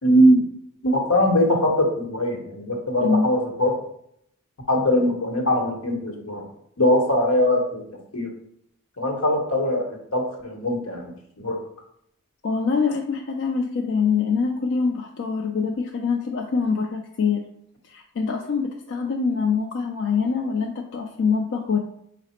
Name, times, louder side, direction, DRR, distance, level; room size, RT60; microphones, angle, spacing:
voice 1, 0.0-0.4 0.8-3.8 4.7-6.4 6.8-7.8 8.1-8.3 9.0-11.1 11.4-11.6, equal, 80° left, 1 dB, 1.0 m, -21 dB
voice 2, 12.4-17.4 17.8-21.8, left 5 dB, 60° left, 1 dB, 0.4 m, -24 dB
4.8 x 2.0 x 4.2 m, 0.72 s
head